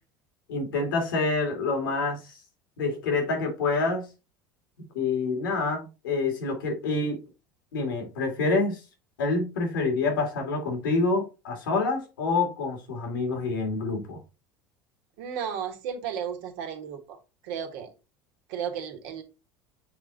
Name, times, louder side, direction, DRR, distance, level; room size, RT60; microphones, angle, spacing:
voice 1, 0.5-2.4 2.8-4.1 4.9-7.2 7.7-8.8 9.2-14.2, left 3 dB, 80° left, 2.0 m, -27 dB
voice 2, 15.2-17.2 17.4-17.9 18.5-19.2, right 8 dB, 70° right, 1.5 m, -34 dB
7.0 x 3.6 x 3.9 m
hypercardioid pair, 75°, 11 cm